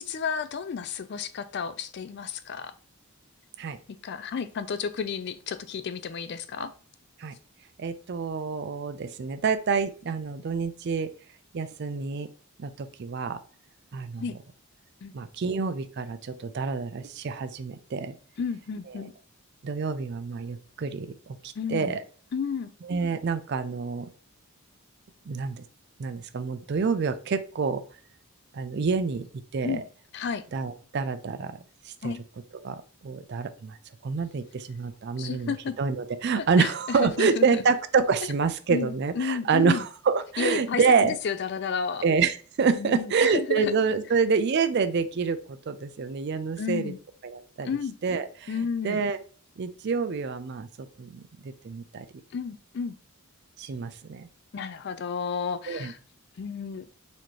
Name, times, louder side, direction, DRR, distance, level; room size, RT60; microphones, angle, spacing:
voice 1, 0.0-2.7 4.0-6.7 14.2-14.3 15.0-15.1 18.4-19.1 21.6-21.9 22.3-22.7 29.6-29.8 30.1-30.4 32.0-32.2 35.2-35.8 36.4-37.6 38.7-39.8 40.4-42.0 42.8-43.7 46.6-47.0 47.6-48.0 48.5-49.0 52.3-53.0 54.5-56.0 56.4-56.9, left 6 dB, 50° left, 0.3 m, -32 dB
voice 2, 7.8-11.1 11.5-12.3 12.6-13.4 13.9-14.2 15.1-18.1 19.0-19.1 19.6-22.0 22.8-24.1 25.3-25.6 26.0-27.8 28.5-29.2 29.5-29.8 30.5-32.1 32.6-33.8 34.0-41.1 42.0-46.9 47.2-47.7 48.0-48.5 48.8-49.2 49.6-52.1 53.6-54.3 55.7-55.9, right 5 dB, 50° right, 0.4 m, -27 dB
4.2 x 2.8 x 3.1 m
head